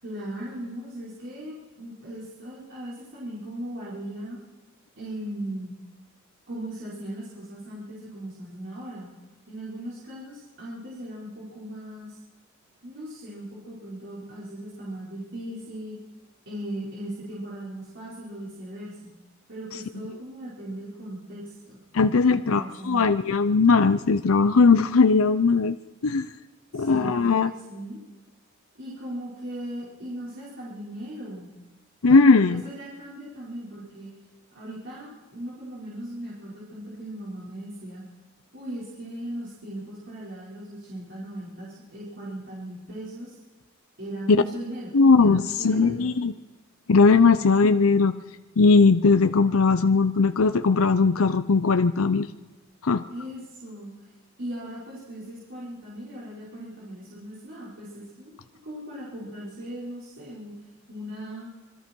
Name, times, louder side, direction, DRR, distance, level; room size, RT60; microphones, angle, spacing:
voice 1, 0.0-4.4 5.0-5.8 6.5-9.1 9.5-12.2 12.8-16.0 16.4-19.1 19.5-21.8 22.3-23.1 26.7-28.0 28.8-31.5 32.0-34.1 34.5-38.0 38.5-43.4 44.0-46.2 47.1-47.5 53.1-53.9 54.4-58.3 58.6-60.5 60.9-61.5, right 1 dB, 60° right, -8 dB, 5.1 m, -38 dB
voice 2, 21.9-25.8 26.0-26.3 26.7-27.5 32.0-32.6 44.9-46.3 46.9-48.1 48.6-52.3 52.8-53.0, left 4 dB, 85° left, 10 dB, 0.7 m, -19 dB
26.5 x 21.5 x 4.6 m, 1.2 s
head